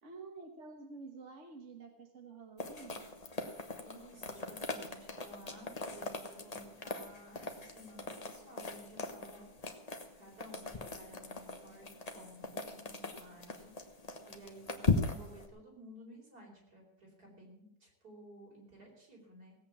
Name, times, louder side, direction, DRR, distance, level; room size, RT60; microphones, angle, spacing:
voice 1, 0.0-3.1, right 4 dB, 50° right, 3 dB, 1.6 m, -50 dB
sound 1, 2.6-15.5, left 3 dB, 30° left, 1.1 m, -39 dB
voice 2, 3.8-9.5 10.1-11.9 12.1-13.7 14.3-19.5, equal, 80° right, -2 dB, 5.1 m, -55 dB
17.0 x 8.3 x 7.2 m, 0.82 s
omnidirectional pair, 1.6 m